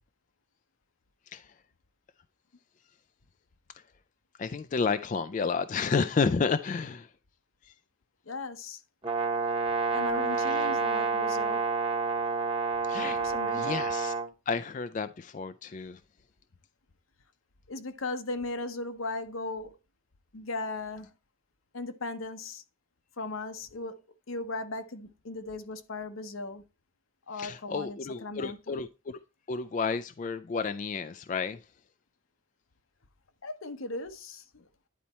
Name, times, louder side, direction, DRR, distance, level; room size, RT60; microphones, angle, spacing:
voice 1, 4.4-7.1 10.4-10.7 12.9-13.2 13.5-14.1 14.5-16.0 27.4-29.2 29.5-31.6, left 5 dB, 35° left, 0.3 m, -31 dB
voice 2, 8.3-8.8 9.9-11.6 13.2-13.8 17.7-19.7 20.3-21.1 21.7-22.6 23.2-24.0 24.3-26.6 27.3-28.8 33.4-34.6, left 2 dB, 80° left, 0.9 m, -37 dB
Brass instrument, 9.0-14.3, right 4 dB, 25° right, 1.0 m, -29 dB
10.5 x 4.2 x 4.2 m
head